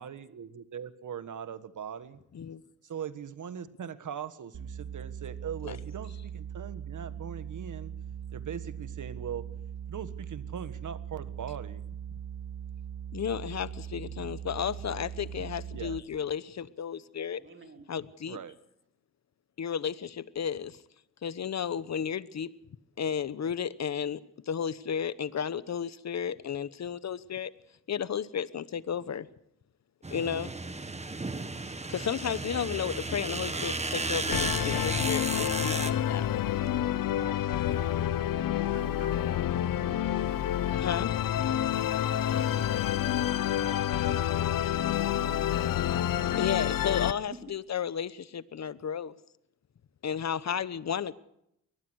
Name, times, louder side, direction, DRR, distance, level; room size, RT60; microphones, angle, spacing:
voice 1, 0.0-2.2 2.8-7.9 8.3-9.5 9.9-11.8 15.7-16.0 18.3-18.5, right 8 dB, 65° right, 12 dB, 1.6 m, -40 dB
sound 1, 4.5-16.0, right 8 dB, 85° right, 2.5 m, -40 dB
voice 2, 13.1-17.4 17.9-18.4 19.6-20.8 21.2-22.5 23.0-27.5 27.9-29.3 30.1-30.5 31.9-36.2 40.8-41.1 46.4-49.1 50.0-51.1, left 8 dB, 55° left, 16 dB, 1.1 m, -33 dB
voice 3, 17.4-18.0 38.4-39.5 41.7-42.6 43.3-43.5 45.4-45.5 46.3-46.4 47.3-47.4, right 4 dB, 40° right, 5 dB, 3.4 m, -52 dB
sound 2, 30.0-35.9, right 3 dB, 20° right, 1.7 m, -34 dB
Musical instrument, 34.3-47.1, left 11 dB, 85° left, 1.0 m, -28 dB
23.0 x 19.5 x 6.4 m, 0.79 s
cardioid pair, 90°, 33 cm